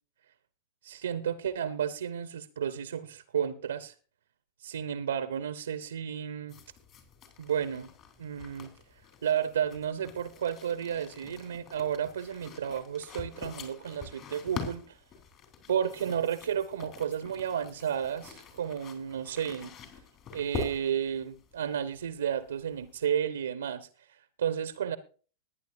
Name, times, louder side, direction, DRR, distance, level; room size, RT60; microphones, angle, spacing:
voice 1, 0.8-3.9 4.6-6.6 7.4-7.9 8.2-8.7 9.2-15.0 15.7-19.7 20.3-25.0, right 8 dB, 65° right, 0.8 m, -32 dB
sound 1, 6.5-23.0, left 6 dB, 35° left, 3.6 m, -45 dB
20.5 x 9.8 x 2.7 m
figure-of-eight pair, 90°, 0 cm